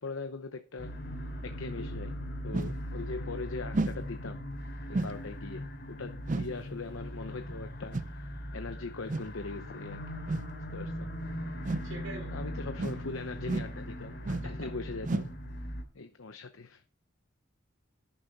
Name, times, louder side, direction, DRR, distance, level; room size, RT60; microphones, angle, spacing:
voice 1, 0.0-10.0 10.7-11.1 12.3-15.3 15.9-16.8, left 3 dB, 75° left, 0.8 m, -41 dB
sound 1, 0.8-15.8, equal, 55° left, 2.8 m, -40 dB
sound 2, 2.5-2.8 3.7-4.0 4.9-5.2 6.3-6.6 7.9-8.1 9.1-9.4 10.3-10.5 11.6-12.0 12.8-13.1 13.5-13.8 14.2-14.6 15.0-15.4, right 2 dB, 40° right, 0.5 m, -32 dB
voice 2, 11.6-12.4 14.4-14.7, right 2 dB, 75° right, 4.2 m, -45 dB
11.0 x 10.0 x 4.1 m
head